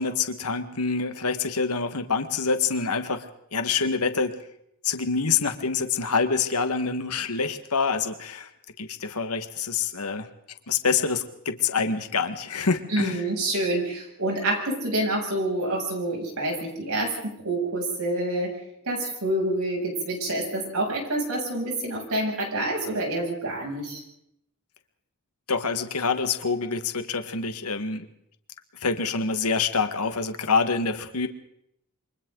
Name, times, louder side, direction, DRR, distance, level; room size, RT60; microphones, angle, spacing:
voice 1, 0.0-3.3 3.5-4.4 4.8-8.5 8.8-10.3 10.7-13.2 25.5-28.1 28.8-31.3, left 5 dB, 90° left, 7 dB, 1.7 m, -26 dB
voice 2, 12.9-18.5 18.8-24.0, right 1 dB, 75° right, 0 dB, 7.6 m, -27 dB
28.5 x 24.5 x 4.0 m, 0.75 s
head